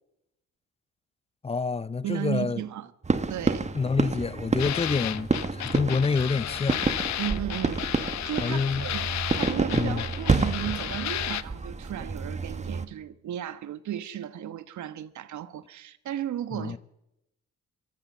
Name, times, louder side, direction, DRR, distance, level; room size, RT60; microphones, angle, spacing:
voice 1, 1.4-2.6 3.7-6.8 8.4-8.9 9.7-10.0 16.5-16.8, left 4 dB, 20° left, 0.7 m, -27 dB
voice 2, 2.0-2.9 3.3-3.7 7.2-9.1 9.3-16.8, right 11 dB, 70° right, 1.4 m, -35 dB
sound 1, 3.0-12.9, right 4 dB, 25° right, 1.5 m, -29 dB
sound 2, 4.6-11.4, left 12 dB, 65° left, 0.9 m, -33 dB
24.0 x 15.0 x 7.4 m
cardioid pair, 90°, 30 cm